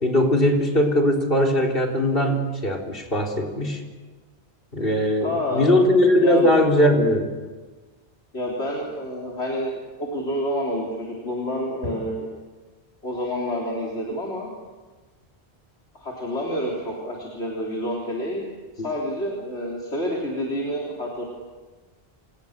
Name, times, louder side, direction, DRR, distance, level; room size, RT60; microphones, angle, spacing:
voice 1, 0.0-3.8 4.7-7.3, left 1 dB, 60° left, 4 dB, 4.2 m, -20 dB
voice 2, 5.2-5.7 6.2-6.5 8.3-9.7 10.0-12.3 13.0-14.5 15.9-18.5 18.8-21.2, equal, 85° left, -2 dB, 4.1 m, -28 dB
28.5 x 26.5 x 6.7 m, 1.3 s
omnidirectional pair, 1.1 m